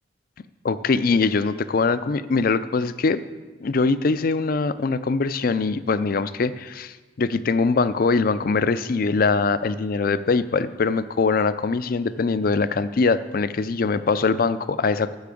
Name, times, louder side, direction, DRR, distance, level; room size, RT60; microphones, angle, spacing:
voice 1, 0.6-3.2 3.6-15.2, left 4 dB, 50° left, 14 dB, 0.4 m, -22 dB
12.0 x 5.9 x 8.4 m, 1.3 s
head